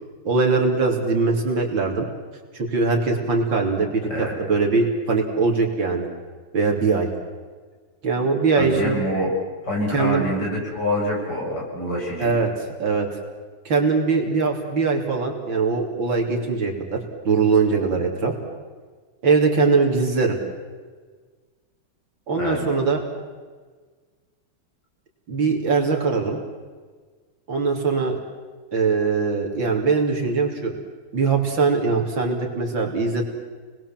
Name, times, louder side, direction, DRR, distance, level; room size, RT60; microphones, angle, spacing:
voice 1, 0.3-2.1 2.5-6.1 6.5-7.1 8.0-9.0 9.9-10.2 12.2-12.5 12.8-13.1 13.7-17.0 17.3-18.3 19.2-20.4 22.3-23.0 25.3-26.4 27.5-28.2 28.7-30.7 31.1-33.2, right 4 dB, 65° right, 2 dB, 3.9 m, -21 dB
voice 2, 8.5-9.3 9.6-12.4 22.4-22.6, left 1 dB, 50° left, -3 dB, 8.3 m, -26 dB
29.0 x 21.0 x 7.5 m, 1.5 s
omnidirectional pair, 2.2 m